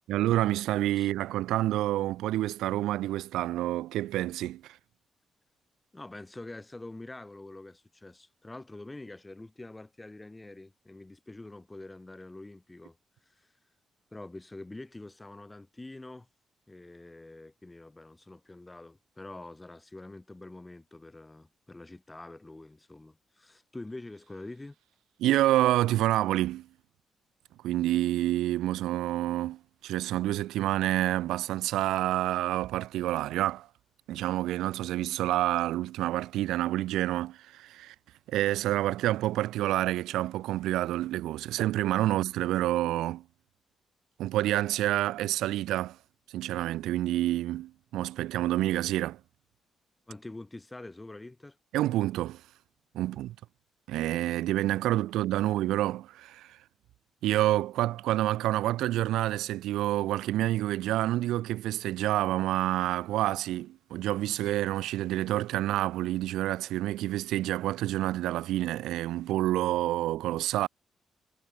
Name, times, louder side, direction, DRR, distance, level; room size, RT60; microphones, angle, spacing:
voice 1, 0.1-4.8 25.2-26.7 27.6-33.7 34.1-37.9 38.3-43.2 44.2-46.0 46.3-49.2 51.7-52.4 52.9-53.4 53.9-56.6 57.2-70.7, right 15 dB, 90° right, 0.4 m, -28 dB
voice 2, 5.9-13.0 13.3-13.5 14.1-16.3 16.7-24.7 50.1-51.6 53.1-53.2, left 2 dB, 20° left, 2.7 m, -45 dB
supercardioid pair, 60°, 0 cm